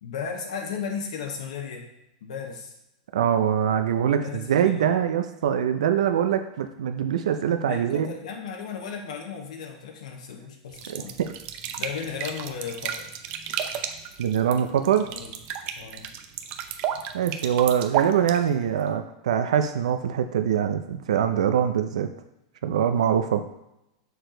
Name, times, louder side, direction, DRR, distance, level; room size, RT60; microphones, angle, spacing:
voice 1, 0.0-1.9 2.2-2.8 4.2-5.0 7.6-11.2 11.7-13.2 15.1-15.3 15.8-16.1, left 6 dB, 80° left, 2 dB, 1.1 m, -35 dB
voice 2, 3.1-8.1 10.9-11.3 14.2-15.1 17.1-22.1 22.6-23.5, right 9 dB, 90° right, 8 dB, 0.5 m, -23 dB
sound 1, 10.7-18.9, right 9 dB, 40° right, 0.6 m, -33 dB
6.4 x 4.7 x 3.8 m, 0.88 s
supercardioid pair, 135°, 4 cm